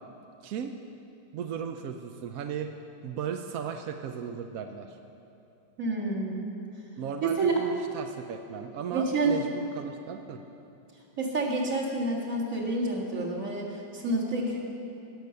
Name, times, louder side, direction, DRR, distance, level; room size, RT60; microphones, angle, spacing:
voice 1, 0.4-0.7 1.3-2.7 3.0-5.0 7.0-10.4, right 7 dB, 70° right, 5 dB, 0.8 m, -36 dB
voice 2, 5.8-6.4 7.2-7.6 8.9-9.4 11.2-14.6, right 2 dB, 45° right, -3 dB, 2.2 m, -28 dB
17.0 x 6.6 x 6.9 m, 2.8 s
omnidirectional pair, 2.0 m